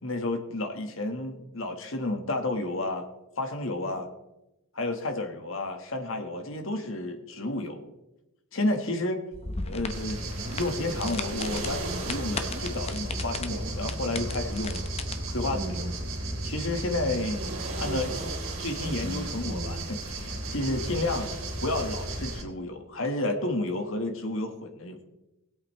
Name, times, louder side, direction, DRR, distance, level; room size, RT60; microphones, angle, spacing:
voice 1, 0.0-3.1 3.4-4.0 4.7-7.8 8.5-9.2 9.7-14.8 15.3-15.9 16.4-17.4 17.8-18.1 18.6-25.0, left 2 dB, 70° left, 5 dB, 1.5 m, -31 dB
sound 1, 9.3-15.1, left 4 dB, 30° left, 0.7 m, -38 dB
sound 2, 9.9-22.4, right 1 dB, 80° right, 2.6 m, -33 dB
19.5 x 8.3 x 3.2 m, 0.97 s
head